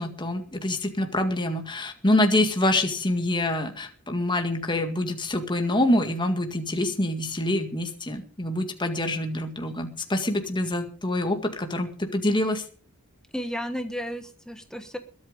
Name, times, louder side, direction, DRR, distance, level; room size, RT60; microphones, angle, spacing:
voice 1, 0.0-12.6, left 1 dB, 20° left, 5 dB, 2.0 m, -26 dB
voice 2, 13.3-15.0, equal, 5° left, 7 dB, 1.3 m, -33 dB
22.0 x 8.7 x 5.3 m, 0.39 s
head